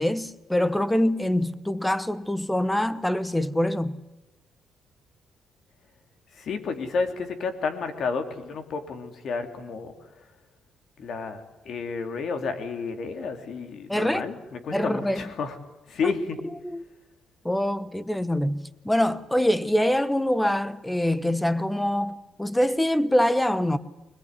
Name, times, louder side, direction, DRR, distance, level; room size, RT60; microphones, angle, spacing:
voice 1, 0.0-4.0 13.9-14.3 14.7-15.2 16.0-16.1 16.6-16.8 17.4-18.6 18.8-23.8, left 1 dB, 5° left, 1.1 m, -24 dB
voice 2, 6.4-10.0 11.0-15.6 15.9-16.4, left 5 dB, 65° left, 2.9 m, -31 dB
21.5 x 21.5 x 9.7 m
cardioid pair, 90°, 0 cm